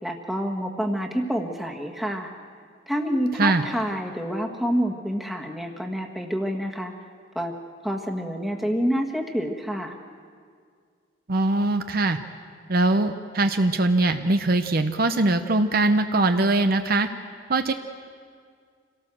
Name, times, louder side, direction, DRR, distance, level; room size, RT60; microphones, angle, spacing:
voice 1, 0.0-2.3 2.9-6.9 7.3-7.5 7.8-9.9, equal, ahead, 1 dB, 1.6 m, -27 dB
voice 2, 11.3-12.2 12.7-17.1 17.5-17.7, right 2 dB, 50° right, 8 dB, 0.8 m, -21 dB
27.0 x 18.0 x 7.6 m, 2.1 s
head